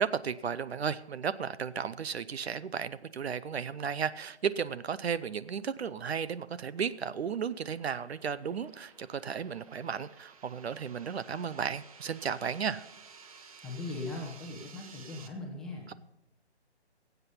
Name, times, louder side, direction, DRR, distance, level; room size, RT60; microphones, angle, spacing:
voice 1, 0.0-12.9, right 7 dB, 70° right, 16 dB, 0.7 m, -34 dB
sound 1, 5.3-15.3, right 5 dB, 35° right, 1.0 m, -55 dB
voice 2, 13.6-15.9, left 2 dB, ahead, -3 dB, 1.0 m, -39 dB
17.5 x 8.1 x 5.5 m, 0.88 s
hypercardioid pair, 160°, 33 cm